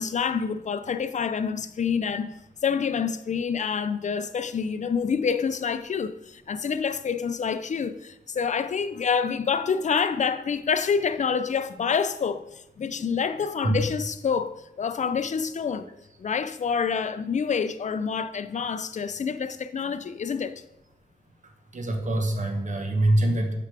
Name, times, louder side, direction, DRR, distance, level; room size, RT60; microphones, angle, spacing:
voice 1, 0.0-15.9 16.2-20.5, left 6 dB, 50° left, 0.4 m, -27 dB
voice 2, 21.7-23.5, right 1 dB, 50° right, 1.2 m, -24 dB
9.2 x 5.9 x 3.3 m
wide cardioid pair, 135°, 16 cm